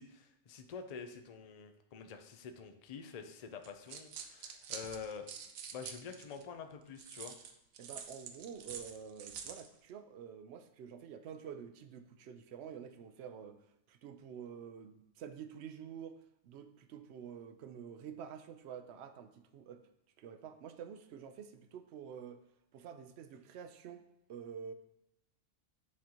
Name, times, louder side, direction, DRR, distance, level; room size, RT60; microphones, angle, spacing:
voice 1, 0.0-5.3 5.7-7.4, left 6 dB, 60° left, 6 dB, 0.4 m, -47 dB
sound 1, 3.6-6.4 7.0-9.7, right 7 dB, 90° right, 1.0 m, -47 dB
voice 2, 7.8-13.6 13.9-16.2 16.4-19.8 20.2-22.4 22.7-24.0 24.3-24.7, right 7 dB, 65° right, 9 dB, 0.7 m, -48 dB
9.6 x 3.8 x 2.9 m, 0.87 s
omnidirectional pair, 1.4 m